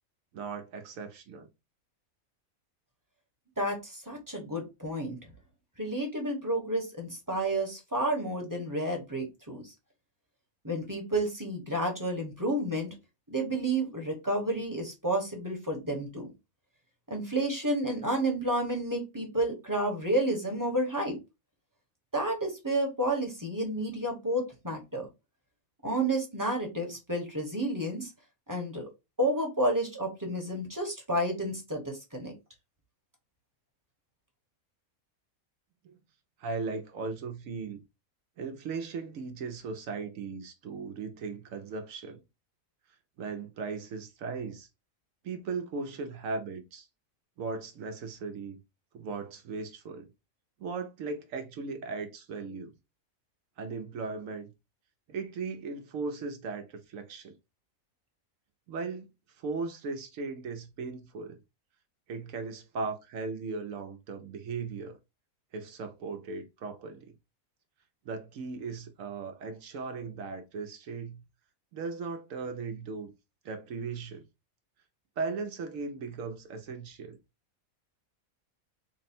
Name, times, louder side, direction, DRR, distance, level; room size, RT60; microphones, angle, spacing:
voice 1, 0.3-1.5 35.8-35.9 36.4-37.8 38.4-42.2 43.2-44.7 45.2-46.9 47.4-48.6 48.9-50.1 50.6-52.7 53.6-54.5 55.1-57.4 58.7-59.1 59.4-61.4 62.1-65.0 65.5-67.1 68.0-71.2 71.7-73.1 73.4-74.2 75.2-77.2, right 4 dB, 75° right, 1.0 m, -37 dB
voice 2, 3.6-5.2 5.8-9.6 10.6-12.9 13.3-16.3 17.1-21.2 22.1-25.1 25.8-28.1 28.5-28.9 29.2-32.3, right 1 dB, 15° right, 0.9 m, -30 dB
4.0 x 2.1 x 4.2 m
omnidirectional pair, 1.5 m